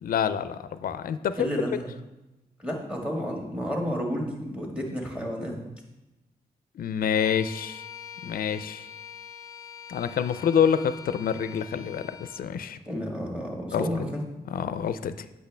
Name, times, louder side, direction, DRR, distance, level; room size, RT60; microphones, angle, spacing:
voice 1, 0.0-1.5 6.8-7.8 8.2-8.9 9.9-12.8 13.7-13.9 14.5-15.3, left 8 dB, 65° left, 13 dB, 0.4 m, -27 dB
voice 2, 1.3-1.8 2.6-5.5 12.8-14.2, equal, 5° right, 0 dB, 1.7 m, -31 dB
Bowed string instrument, 7.1-12.5, left 8 dB, 20° left, 0.8 m, -44 dB
8.2 x 6.1 x 3.3 m, 1.0 s
cardioid pair, 100°, 16 cm